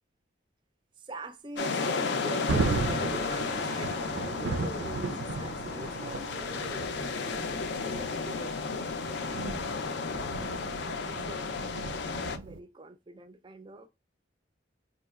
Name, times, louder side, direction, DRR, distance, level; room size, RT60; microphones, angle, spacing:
voice 1, 1.0-6.9 7.2-8.6 9.3-9.4 11.0-11.5 12.4-13.9, right 1 dB, 25° right, 0.4 m, -44 dB
sound 1, 1.6-12.4, left 4 dB, 65° left, 0.4 m, -33 dB
Thunder, 1.9-12.6, right 4 dB, 85° right, 0.4 m, -36 dB
sound 2, 2.8-9.6, left 1 dB, 15° left, 0.6 m, -52 dB
4.7 x 2.8 x 2.3 m
head